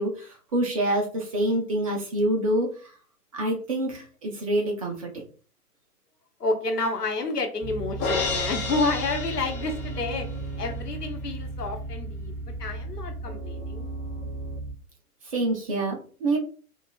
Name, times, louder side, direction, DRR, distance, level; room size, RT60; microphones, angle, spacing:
voice 1, 0.0-2.9 3.3-5.2 15.2-16.4, right 1 dB, 25° right, 1 dB, 0.5 m, -26 dB
voice 2, 6.4-10.3 10.6-13.9, left 3 dB, 80° left, 4 dB, 1.0 m, -29 dB
sound 1, 7.6-14.7, right 2 dB, 10° left, 1.2 m, -35 dB
Crash cymbal, 8.0-10.3, left 4 dB, 30° left, 0.9 m, -30 dB
5.4 x 2.4 x 2.2 m, 0.39 s
figure-of-eight pair, 120°, 47 cm